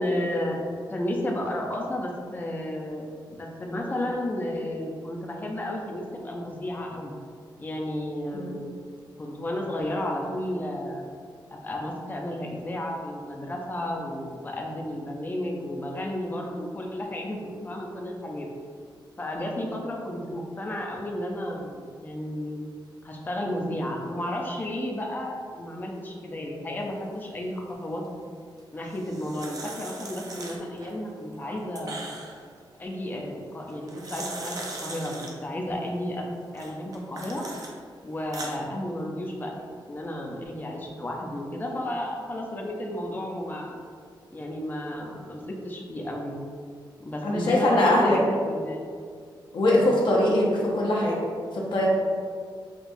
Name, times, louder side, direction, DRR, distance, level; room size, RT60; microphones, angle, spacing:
voice 1, 0.0-7.2 7.6-8.7 9.2-11.1 11.5-18.5 19.2-22.6 23.0-28.0 28.7-32.1 32.8-37.4 38.0-43.8 44.3-46.3 47.0-49.1 49.7-50.0, left 1 dB, 20° left, 0 dB, 0.5 m, -32 dB
sound 1, 28.8-30.9 31.3-32.5 33.7-35.3 36.5-37.7 38.1-38.6, right 2 dB, 45° right, 0.5 m, -39 dB
voice 2, 47.2-48.2 49.5-51.2 51.5-51.9, left 1 dB, 65° left, -3 dB, 0.7 m, -22 dB
5.7 x 2.3 x 2.6 m, 2.1 s
wide cardioid pair, 160°, 9 cm